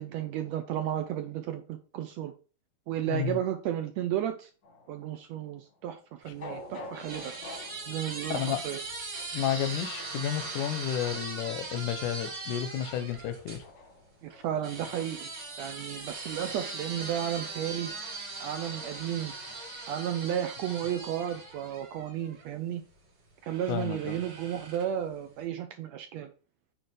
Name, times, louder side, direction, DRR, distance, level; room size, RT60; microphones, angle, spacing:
voice 1, 0.0-2.3 2.9-4.5 4.9-7.3 7.9-8.8 14.2-15.3 15.6-17.9 18.4-19.3 19.9-22.8 23.5-26.3, right 10 dB, 80° right, 1.6 m, -33 dB
voice 2, 3.1-3.4 8.3-8.6 9.3-13.6 23.7-24.2, left 10 dB, 85° left, 2.2 m, -31 dB
sound 1, 4.6-21.1, left 2 dB, 50° left, 1.0 m, -51 dB
sound 2, 6.3-13.6 14.6-22.5 23.4-25.0, right 3 dB, 55° right, 3.9 m, -40 dB
8.7 x 3.1 x 4.9 m
omnidirectional pair, 3.6 m